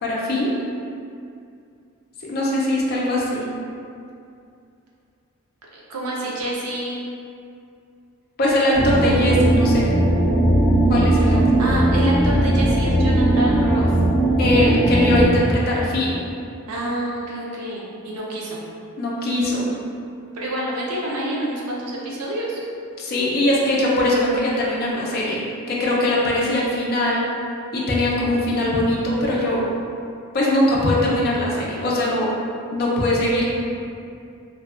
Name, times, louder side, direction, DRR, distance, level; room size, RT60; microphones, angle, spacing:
voice 1, 0.0-0.5 2.3-3.5 8.4-9.8 10.9-11.4 14.4-16.1 19.0-19.7 23.0-27.2 27.7-29.7 30.3-32.3 32.7-33.5, left 1 dB, 45° left, -5 dB, 0.4 m, -21 dB
voice 2, 5.7-7.0 11.2-13.9 16.7-18.6 20.3-22.6, right 1 dB, 85° right, -4 dB, 0.5 m, -28 dB
sound 1, 8.7-15.2, right 1 dB, 5° right, 0.7 m, -18 dB
2.6 x 2.2 x 2.4 m, 2.5 s
head